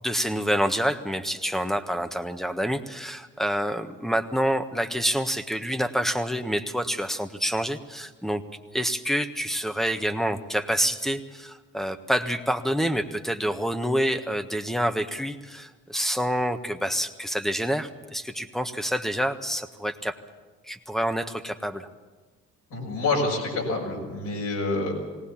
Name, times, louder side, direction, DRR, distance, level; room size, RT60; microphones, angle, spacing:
voice 1, 0.0-8.4 8.7-20.2 20.7-21.9, equal, ahead, 9 dB, 1.4 m, -27 dB
voice 2, 22.7-24.9, left 2 dB, 75° left, -2 dB, 6.5 m, -27 dB
19.0 x 18.5 x 7.3 m, 1.3 s
hypercardioid pair, 55°, 31 cm